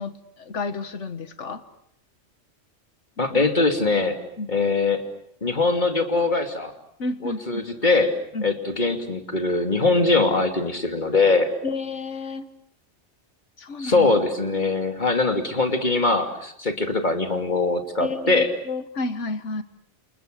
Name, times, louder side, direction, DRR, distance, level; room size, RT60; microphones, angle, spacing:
voice 1, 0.0-1.6 3.3-3.5 4.4-4.5 7.0-7.6 8.3-8.5 11.6-12.5 13.6-14.1 18.0-19.6, left 3 dB, 80° left, 11 dB, 1.9 m, -31 dB
voice 2, 3.2-4.2 4.5-5.0 5.4-6.7 7.2-8.1 8.4-11.5 13.8-18.5, left 3 dB, 40° left, 6 dB, 2.8 m, -22 dB
29.0 x 28.5 x 6.7 m, 0.71 s
omnidirectional pair, 1.2 m